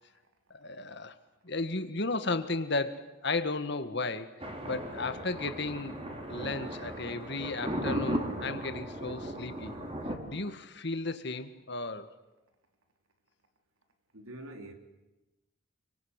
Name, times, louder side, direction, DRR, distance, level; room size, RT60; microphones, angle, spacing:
voice 1, 0.5-1.2 1.4-6.0 6.3-9.7 10.3-12.1, left 3 dB, 55° left, 1.8 m, -34 dB
Thunder, 4.4-10.2, right 1 dB, 30° right, 4.1 m, -36 dB
voice 2, 14.1-14.7, right 1 dB, 85° right, 3.9 m, -44 dB
29.0 x 25.0 x 8.3 m
head